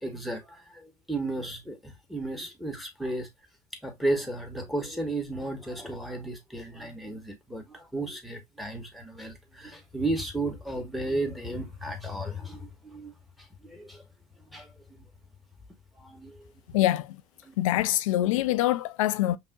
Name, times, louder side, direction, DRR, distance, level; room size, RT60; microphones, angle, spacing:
voice 1, 0.0-3.3 3.8-13.1 13.6-14.0 14.5-14.7 16.0-16.4 16.7-16.8 17.4-17.5, right 2 dB, ahead, 1.5 m, -34 dB
voice 2, 16.7-17.2 17.6-19.4, left 14 dB, 85° left, 0.5 m, -24 dB
5.5 x 2.8 x 2.4 m
supercardioid pair, 95°, 17 cm